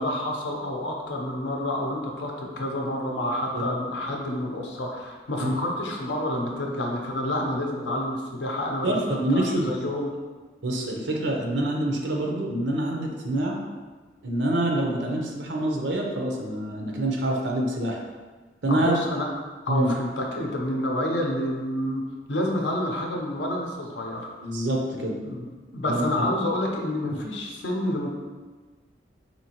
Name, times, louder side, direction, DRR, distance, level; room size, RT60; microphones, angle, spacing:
voice 1, 0.0-10.1 18.7-19.3 19.6-22.0 22.3-24.3 25.2-28.1, left 1 dB, 80° left, 0 dB, 0.6 m, -29 dB
voice 2, 8.8-9.7 10.6-13.6 14.2-18.0 18.6-18.9 19.7-19.9 24.4-25.2 25.8-26.2, right 1 dB, 80° right, 0 dB, 0.7 m, -26 dB
4.3 x 2.7 x 2.9 m, 1.3 s
head